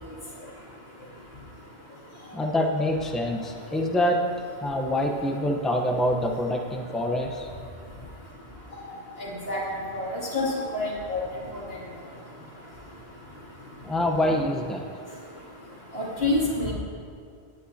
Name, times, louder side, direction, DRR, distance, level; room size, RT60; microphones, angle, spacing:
voice 1, 2.3-4.3 4.6-7.5 13.8-14.9, left 1 dB, ahead, 1 dB, 0.8 m, -25 dB
voice 2, 9.2-9.6 9.9-11.2 15.9-16.7, left 2 dB, 65° left, -5 dB, 2.9 m, -27 dB
18.5 x 9.4 x 2.8 m, 2.4 s
omnidirectional pair, 1.1 m